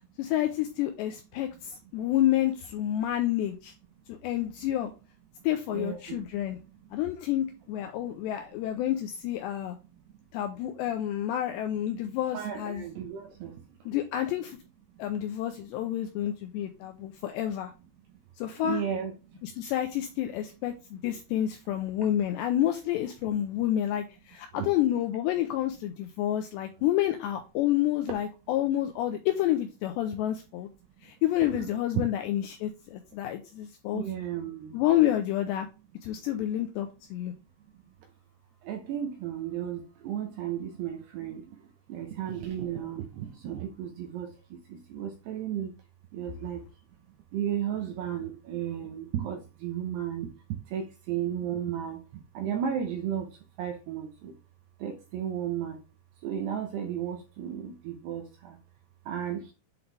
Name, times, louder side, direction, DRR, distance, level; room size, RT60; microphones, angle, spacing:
voice 1, 0.2-3.7 4.1-4.9 5.4-6.6 6.9-9.8 10.3-12.8 13.9-14.6 15.0-17.7 18.4-18.8 19.4-30.7 31.0-34.0 34.7-35.7 36.0-37.3, left 12 dB, 85° left, 6 dB, 2.5 m, -29 dB
voice 2, 5.7-6.2 12.3-13.5 18.6-19.1 22.0-22.1 24.6-24.7 31.5-31.6 33.9-34.8 38.7-41.4 41.9-44.3 44.7-45.7 46.1-46.6 47.3-50.3 50.7-52.0 52.4-53.3 53.6-54.3 54.8-55.8 56.2-58.6 59.1-59.5, right 9 dB, 80° right, 4 dB, 2.4 m, -34 dB
8.2 x 3.9 x 3.3 m, 0.30 s
omnidirectional pair, 5.6 m